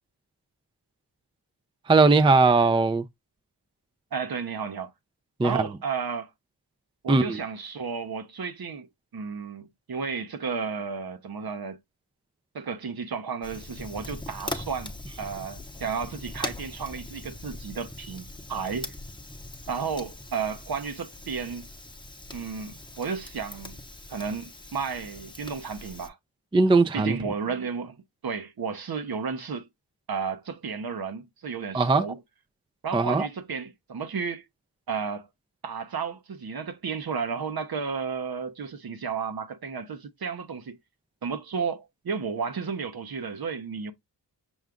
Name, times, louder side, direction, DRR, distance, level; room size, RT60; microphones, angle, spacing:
voice 1, 1.9-3.0 5.4-5.6 7.1-7.4 26.5-27.2 31.7-32.0 32.9-33.3, right 3 dB, 15° right, 0.4 m, -19 dB
voice 2, 4.1-4.9 5.4-6.3 7.0-8.9 9.1-11.8 12.5-18.9 19.7-21.7 22.3-23.8 24.1-26.2 26.9-29.7 30.1-32.2 32.8-34.4 34.9-35.3 35.6-40.8 41.2-43.9, right 5 dB, 60° right, 0.8 m, -33 dB
Fire, 13.4-26.1, left 2 dB, 10° left, 0.8 m, -41 dB
6.2 x 2.3 x 3.7 m
wide cardioid pair, 80°, 42 cm